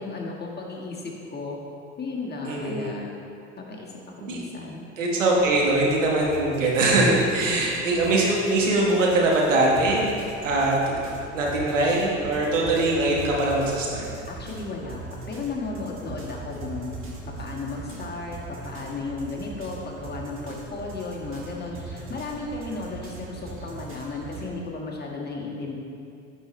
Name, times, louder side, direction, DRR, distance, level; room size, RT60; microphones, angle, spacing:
voice 1, 0.0-1.6 2.0-3.1 3.6-4.0 4.2-4.9 7.4-7.8 14.3-16.9 17.4-25.8, left 3 dB, 25° left, -2 dB, 1.5 m, -34 dB
voice 2, 2.4-2.9 4.2-4.4 5.0-10.1 10.4-14.1, right 2 dB, 90° right, -2 dB, 1.2 m, -22 dB
sound 1, 5.4-24.4, right 3 dB, 35° right, 1.8 m, -40 dB
9.9 x 5.5 x 3.1 m, 2.6 s
hypercardioid pair, 75°, 37 cm